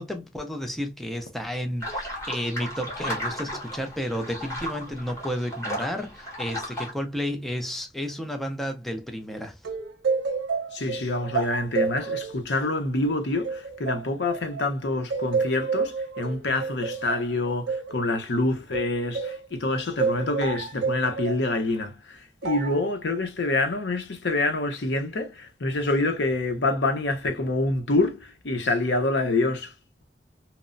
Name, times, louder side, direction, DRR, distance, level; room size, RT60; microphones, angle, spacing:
voice 1, 0.0-9.6, equal, ahead, 0.3 m, -32 dB
sound 1, 1.8-6.9, equal, 15° left, 1.0 m, -34 dB
sound 2, 9.6-14.7 15.1-19.5 20.0-21.4 22.4-22.9, right 5 dB, 85° right, 0.6 m, -29 dB
voice 2, 10.7-29.7, left 2 dB, 80° left, 0.7 m, -26 dB
3.0 x 2.0 x 2.4 m
head